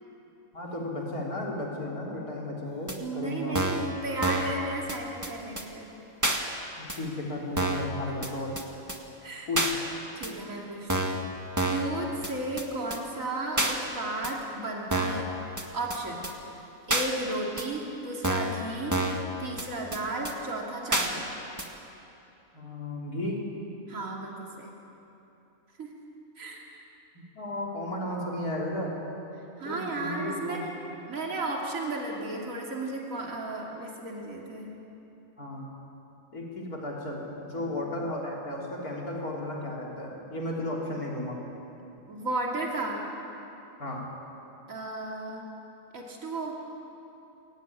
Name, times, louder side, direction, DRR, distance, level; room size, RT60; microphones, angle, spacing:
voice 1, 0.5-3.7 6.8-8.6 9.5-9.7 22.5-23.5 27.3-28.9 29.6-30.9 35.4-35.7 36.3-41.4 43.8-44.1, left 1 dB, 90° left, -2 dB, 4.1 m, -34 dB
sound 1, 2.9-3.0 3.5-3.9 4.2-4.5 4.9-5.0 5.2-5.3 5.6-5.7 6.2-6.4 6.9-7.0 7.6-7.9 8.2-8.3 8.6-8.7 8.9-9.0 9.5-9.7 10.2-10.3 10.9-11.2 11.6-11.9 12.2-12.3 12.6-12.7 12.9-13.0 13.6-13.7 14.2-14.3 14.9-15.2 15.6-15.7 15.9-16.0 16.2-16.3 16.9-17.1 17.6-17.7 18.2-18.6 18.9-19.2 19.6-19.7 19.9-20.0 20.2-20.3 20.9-21.1 21.6-21.7, right 1 dB, 10° right, 1.7 m, -28 dB
voice 2, 3.0-5.9 9.2-9.5 10.1-11.1 11.6-15.3 15.7-16.2 16.9-19.0 19.4-21.3 23.9-24.7 25.8-25.9 26.4-26.7 29.6-30.7 31.1-34.7 37.6-37.7 42.1-43.0 44.7-45.4 45.9-46.6, right 2 dB, 65° right, -1 dB, 3.1 m, -34 dB
22.5 x 17.0 x 9.7 m, 2.9 s
omnidirectional pair, 1.5 m